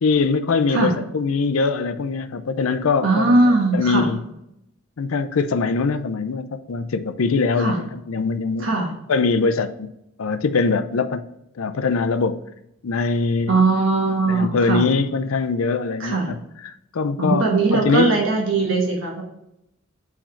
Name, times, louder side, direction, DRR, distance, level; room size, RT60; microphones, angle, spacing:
voice 1, 0.0-4.2 5.0-8.7 9.1-9.9 10.2-11.2 11.6-12.4 12.8-13.6 14.3-17.5 17.7-18.1, left 4 dB, 75° left, 11 dB, 0.5 m, -22 dB
voice 2, 3.0-4.1 7.6-7.8 8.6-8.9 13.5-14.8 16.0-16.3 17.2-19.2, right 3 dB, 65° right, -1 dB, 1.2 m, -19 dB
4.8 x 4.4 x 5.6 m, 0.80 s
head